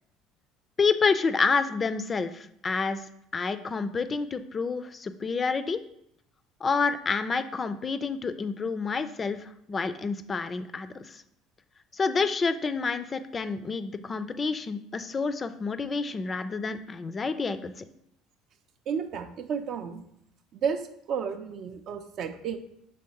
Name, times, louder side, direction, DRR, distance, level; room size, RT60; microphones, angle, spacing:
voice 1, 0.8-3.0 3.3-5.8 6.6-11.2 11.9-17.8, left 4 dB, 30° left, 11 dB, 0.3 m, -28 dB
voice 2, 18.9-20.0 20.5-20.8 21.1-22.6, right 7 dB, 60° right, 8 dB, 0.4 m, -32 dB
5.2 x 3.1 x 2.8 m, 0.73 s
hypercardioid pair, 70°, 0 cm